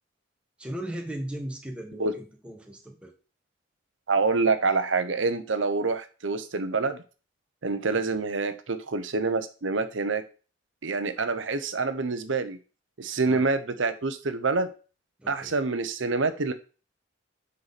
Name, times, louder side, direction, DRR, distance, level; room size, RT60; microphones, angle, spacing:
voice 1, 0.6-3.1 7.9-8.0 13.2-13.5 15.2-15.5, right 1 dB, 5° right, 1 dB, 1.5 m, -37 dB
voice 2, 4.1-7.0 7.6-10.2 10.8-12.6 13.0-14.7 15.3-16.5, right 3 dB, 80° right, 9 dB, 0.9 m, -26 dB
7.9 x 5.7 x 4.2 m, 0.35 s
head